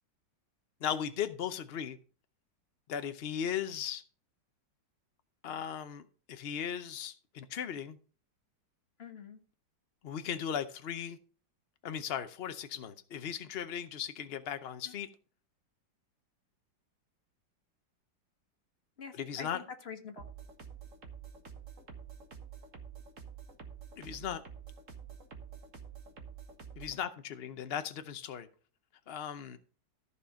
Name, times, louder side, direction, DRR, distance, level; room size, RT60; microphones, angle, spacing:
voice 1, 0.8-2.0 2.9-4.0 5.4-8.0 10.0-11.2 11.8-15.1 19.1-19.6 24.0-24.4 26.8-28.5 29.1-29.6, left 8 dB, 70° left, 0.5 m, -37 dB
voice 2, 9.0-9.4 14.9-15.0 19.0-20.3, left 6 dB, 35° left, 1.6 m, -45 dB
Trance beat with deep bassline, 20.2-27.0, right 7 dB, 45° right, 1.8 m, -48 dB
14.0 x 4.8 x 5.6 m
omnidirectional pair, 2.0 m